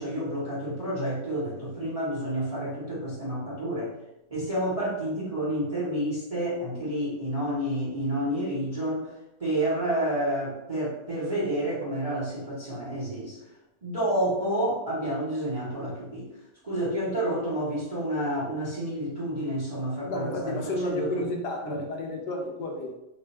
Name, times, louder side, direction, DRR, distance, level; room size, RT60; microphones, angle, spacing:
voice 1, 0.0-3.9 4.3-9.1 9.4-13.4 13.8-16.3 16.6-21.3 21.6-21.8, right 1 dB, 30° right, -7 dB, 0.8 m, -29 dB
voice 2, 20.1-23.0, left 2 dB, 70° left, 1 dB, 1.2 m, -31 dB
3.2 x 2.4 x 4.2 m, 0.90 s
omnidirectional pair, 1.9 m